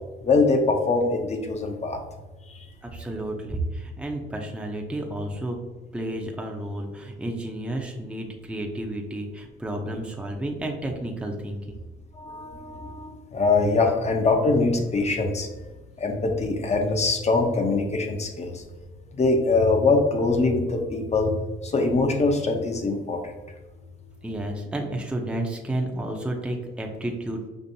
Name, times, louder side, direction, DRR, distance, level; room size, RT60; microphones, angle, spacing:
voice 1, 0.2-2.0 12.2-15.5 16.0-18.6 19.1-21.3 21.6-23.3, left 3 dB, 35° left, 4 dB, 0.7 m, -23 dB
voice 2, 2.8-5.6 5.9-11.8 24.2-27.5, right 1 dB, 5° right, 1 dB, 0.5 m, -31 dB
5.2 x 2.5 x 2.7 m, 1.2 s
cardioid pair, 90°, 20 cm